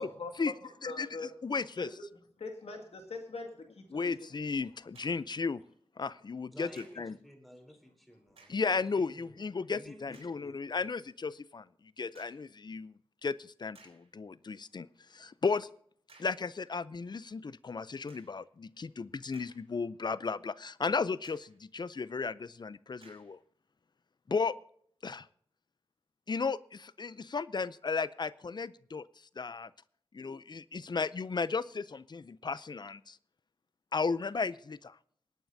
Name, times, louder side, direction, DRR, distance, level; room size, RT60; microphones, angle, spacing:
voice 1, 0.0-0.5 0.8-1.3 1.8-2.0 2.4-4.3, left 3 dB, 90° left, 3 dB, 2.0 m, -42 dB
voice 2, 1.4-1.9 3.9-5.6 6.0-6.7 7.0-7.1 8.5-11.6 12.0-13.0 13.2-14.9 15.1-15.7 16.2-23.4 24.3-24.5 25.0-25.3 26.3-29.1 29.4-29.7 30.1-33.2 33.9-34.9, left 4 dB, 45° left, 18 dB, 0.5 m, -34 dB
sound 1, 4.9-5.4 6.8-7.1 8.3-8.7 9.3-9.4 10.1-10.4 12.1-12.5 13.2-13.3 13.7-14.1 16.1-16.5 18.1-18.4 19.1-19.9 20.3-20.4 21.2-21.6 23.0-23.4, right 3 dB, 90° right, 4.1 m, -60 dB
voice 3, 6.5-8.6 8.9-9.4 9.7-10.8, equal, ahead, 3 dB, 3.6 m, -53 dB
27.0 x 9.2 x 2.7 m, 0.63 s
wide cardioid pair, 65°, 10 cm